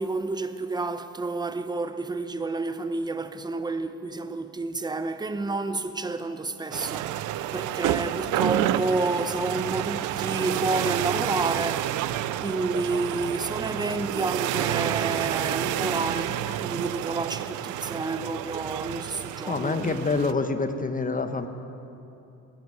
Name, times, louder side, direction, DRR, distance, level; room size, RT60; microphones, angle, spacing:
voice 1, 0.0-20.0, right 3 dB, 15° right, 0.8 m, -30 dB
sound 1, 6.7-20.3, right 12 dB, 85° right, 0.6 m, -29 dB
voice 2, 19.5-21.5, left 3 dB, 25° left, 1.1 m, -26 dB
14.5 x 9.2 x 9.4 m
cardioid pair, 90°, 30 cm